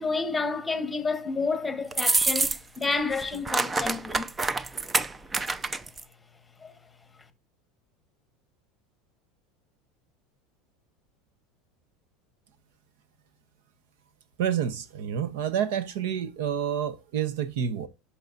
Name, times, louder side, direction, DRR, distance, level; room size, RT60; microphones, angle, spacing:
voice 1, 0.0-4.3 6.6-6.7, left 4 dB, 10° left, 1.1 m, -30 dB
sound 1, 1.9-2.8 3.1-6.0, right 3 dB, 10° right, 0.3 m, -26 dB
voice 2, 14.4-17.9, right 9 dB, 75° right, 0.9 m, -28 dB
11.0 x 6.0 x 2.6 m
supercardioid pair, 165°, 0 cm